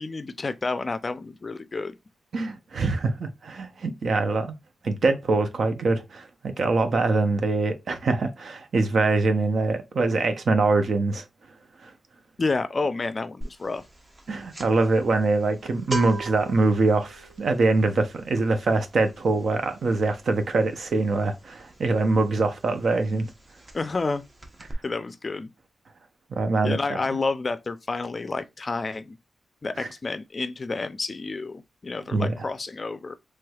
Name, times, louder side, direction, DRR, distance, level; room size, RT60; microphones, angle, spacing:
voice 1, 0.0-1.9 12.4-13.8 23.7-24.2 24.8-25.5 26.6-29.2 29.6-33.2, left 3 dB, 40° left, 0.4 m, -29 dB
voice 2, 2.3-4.5 4.8-11.2 11.8-11.9 14.3-23.3 26.3-26.8 29.8-29.9 32.1-32.3, right 3 dB, 70° right, 0.6 m, -24 dB
sound 1, 13.4-13.7 13.9-22.5 22.8-23.0 23.3-24.1 24.4-24.7, right 1 dB, 35° right, 0.8 m, -38 dB
3.2 x 3.1 x 2.3 m
wide cardioid pair, 90°, 0 cm